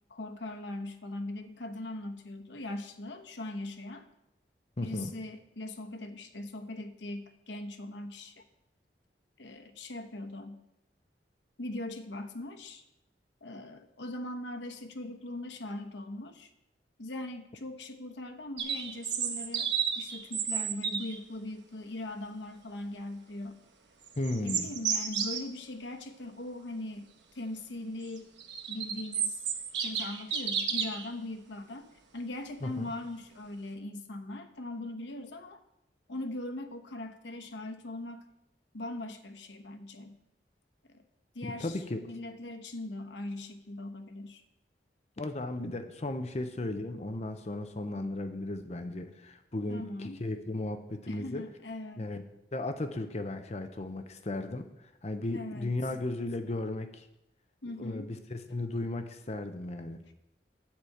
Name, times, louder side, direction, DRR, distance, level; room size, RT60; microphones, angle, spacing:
voice 1, 0.1-4.1 4.8-8.4 9.4-10.6 11.6-12.8 13.4-16.5 17.0-23.6 24.4-27.1 27.3-28.3 28.7-29.4 29.7-35.6 36.1-38.3 38.7-40.2 40.9-41.0 41.3-44.4 49.7-50.2 51.1-52.1 55.3-55.7 57.6-58.1, left 1 dB, 90° left, 7 dB, 1.0 m, -40 dB
voice 2, 4.8-5.1 24.2-24.7 32.6-32.9 41.5-42.0 45.2-51.4 52.0-52.2 52.5-57.1 57.8-60.0, left 2 dB, 40° left, 8 dB, 0.7 m, -35 dB
sound 1, 18.6-21.2 24.0-25.4 28.2-31.1, right 7 dB, 85° right, 1.2 m, -32 dB
10.0 x 5.0 x 7.8 m, 0.88 s
head